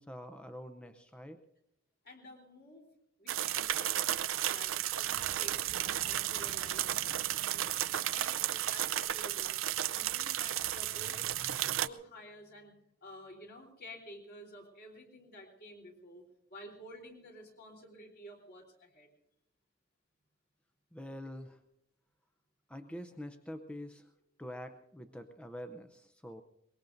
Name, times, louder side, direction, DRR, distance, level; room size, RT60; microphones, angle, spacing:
voice 1, 0.0-1.4 20.9-21.6 22.7-24.1 24.4-26.4, equal, 5° left, 7 dB, 0.6 m, -45 dB
voice 2, 2.0-2.9 3.2-4.1 4.4-6.9 7.4-11.2 11.6-12.7 13.0-16.2 16.5-19.1, equal, 50° left, 0 dB, 3.6 m, -51 dB
sound 1, 3.3-11.9, right 12 dB, 70° right, 0.5 m, -33 dB
23.5 x 21.0 x 2.6 m, 0.83 s
head